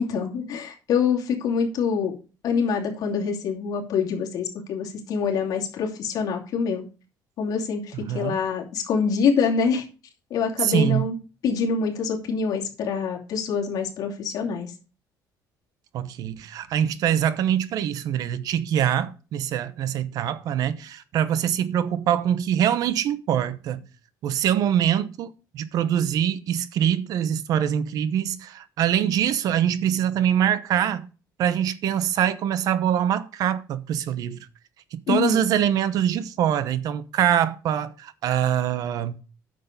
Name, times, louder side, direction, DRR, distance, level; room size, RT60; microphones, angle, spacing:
voice 1, 0.0-2.1 2.4-6.8 7.4-9.8 10.3-11.1 11.4-14.7 35.1-35.5, left 6 dB, 65° left, 2.7 m, -25 dB
voice 2, 10.6-11.0 15.9-23.8 24.2-31.1 31.4-34.4 34.9-39.2, right 10 dB, 65° right, 0.9 m, -24 dB
9.6 x 6.7 x 5.2 m
cardioid pair, 140°, 7 cm